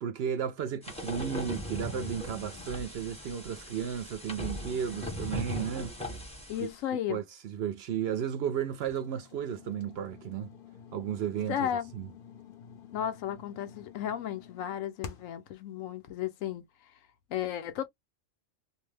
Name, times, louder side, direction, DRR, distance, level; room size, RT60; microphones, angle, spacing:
voice 1, 0.0-6.0 6.6-6.7 7.1-10.5 10.9-12.1, right 8 dB, 60° right, 0.7 m, -34 dB
sound 1, 0.8-6.7, equal, 5° left, 0.6 m, -39 dB
voice 2, 6.5-7.2 11.5-11.9 12.9-16.6 17.3-17.9, left 10 dB, 85° left, 1.0 m, -34 dB
sound 2, 8.8-15.5, left 7 dB, 55° left, 0.6 m, -49 dB
2.6 x 2.0 x 3.1 m
omnidirectional pair, 1.3 m